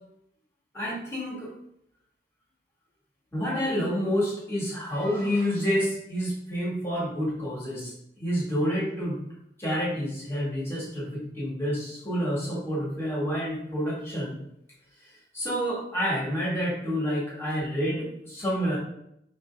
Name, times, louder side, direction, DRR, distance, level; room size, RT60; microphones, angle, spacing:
voice 1, 0.7-1.5 3.3-7.9 8.2-9.2 9.6-14.4 15.3-18.8, equal, 15° left, -6 dB, 1.6 m, -28 dB
4.4 x 2.7 x 3.4 m, 0.75 s
head